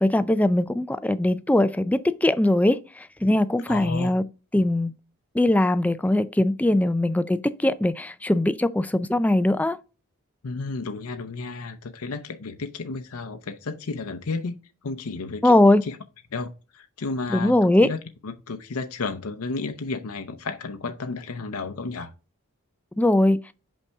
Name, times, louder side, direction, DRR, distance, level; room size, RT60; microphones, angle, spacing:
voice 1, 0.0-4.2 4.5-4.9 5.3-9.8 15.4-15.8 17.3-17.9 23.0-23.4, left 1 dB, 5° left, 0.3 m, -21 dB
voice 2, 3.7-4.2 10.4-14.6 14.8-15.5 15.8-16.0 16.3-17.5 17.8-18.0 18.2-22.1, left 3 dB, 80° left, 0.7 m, -32 dB
5.5 x 5.4 x 3.5 m
head